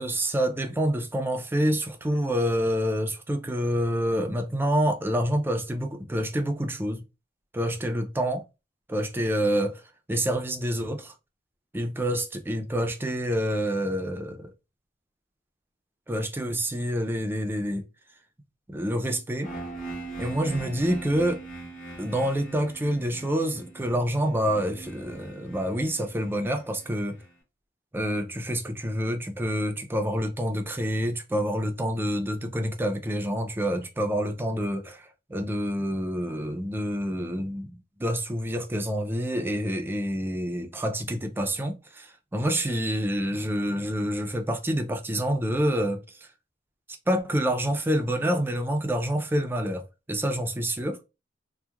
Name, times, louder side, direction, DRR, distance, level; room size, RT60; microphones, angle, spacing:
voice 1, 0.0-7.0 7.5-8.4 8.9-9.8 10.1-11.1 11.7-14.5 16.1-17.9 18.7-19.5 20.2-21.4 22.0-27.2 27.9-46.0 47.1-51.0, equal, 10° right, 0.3 m, -27 dB
sound 1, 19.4-27.2, right 2 dB, 45° left, 0.9 m, -41 dB
2.8 x 2.1 x 2.3 m
head